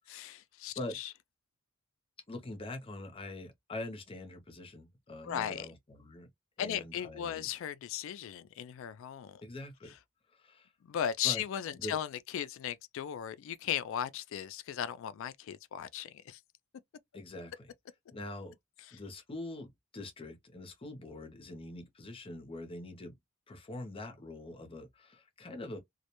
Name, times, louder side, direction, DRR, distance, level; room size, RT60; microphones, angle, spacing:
voice 1, 0.1-1.1 5.2-5.7 6.6-9.4 10.8-16.4, left 10 dB, 65° left, 0.3 m, -37 dB
voice 2, 2.3-6.3 6.6-7.5 9.4-10.0 10.3-10.7 11.2-11.4 11.7-12.0 17.1-17.7 18.1-18.6 18.9-23.1 23.5-25.8, left 2 dB, 25° left, 0.6 m, -44 dB
2.2 x 2.1 x 2.8 m
head